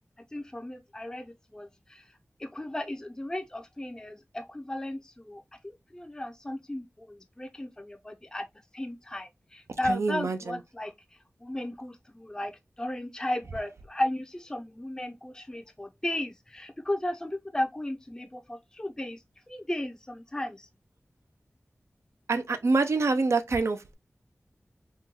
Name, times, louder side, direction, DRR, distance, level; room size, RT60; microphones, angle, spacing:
voice 1, 0.3-2.0 2.4-5.4 5.9-8.5 8.7-10.9 11.4-12.5 12.8-19.2 19.5-20.7, left 1 dB, 15° left, 0.4 m, -35 dB
voice 2, 9.9-10.6 22.3-23.9, right 3 dB, 75° right, 0.4 m, -26 dB
3.6 x 2.2 x 2.8 m
wide cardioid pair, 65°, 5 cm